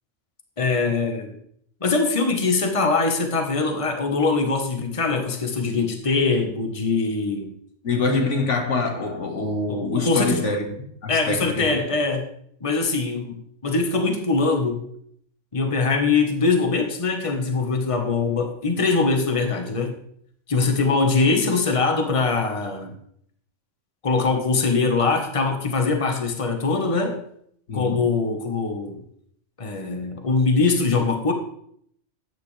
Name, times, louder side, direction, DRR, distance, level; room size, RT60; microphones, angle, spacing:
voice 1, 0.6-1.4 1.8-7.5 9.7-10.4 11.1-12.3 12.6-14.8 15.5-19.9 20.5-22.9 24.0-27.2 27.7-29.0 29.6-31.3, left 4 dB, 30° left, 4 dB, 1.3 m, -22 dB
voice 2, 7.8-11.7 27.7-28.1, left 3 dB, 85° left, 3 dB, 2.0 m, -25 dB
13.0 x 9.5 x 3.3 m, 0.67 s
omnidirectional pair, 1.2 m